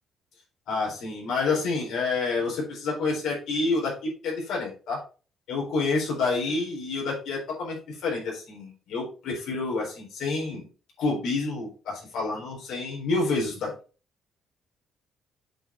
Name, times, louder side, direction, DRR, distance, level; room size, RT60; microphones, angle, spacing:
voice 1, 0.7-5.0 5.5-10.7 11.0-13.7, left 3 dB, 85° left, -3 dB, 4.1 m, -28 dB
7.9 x 4.9 x 4.3 m, 0.36 s
cardioid pair, 90°, 0 cm